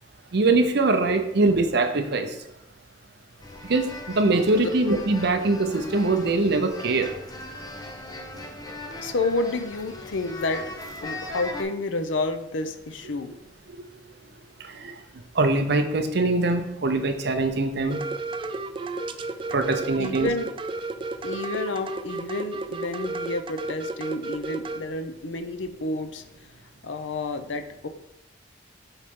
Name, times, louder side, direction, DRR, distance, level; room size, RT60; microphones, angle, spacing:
voice 1, 0.3-2.3 3.6-7.1 13.7-13.8 14.7-14.9 15.3-18.0 19.5-20.3, right 3 dB, 60° right, 7 dB, 0.7 m, -23 dB
sound 1, 3.4-11.6, left 2 dB, 20° left, 0.7 m, -39 dB
voice 2, 9.0-10.7 11.0-13.3 20.0-20.5 21.2-26.2 26.8-27.9, left 2 dB, 80° left, 8 dB, 0.6 m, -30 dB
sound 2, 17.9-24.8, right 3 dB, 25° right, 0.3 m, -32 dB
8.0 x 4.0 x 3.7 m, 0.86 s
head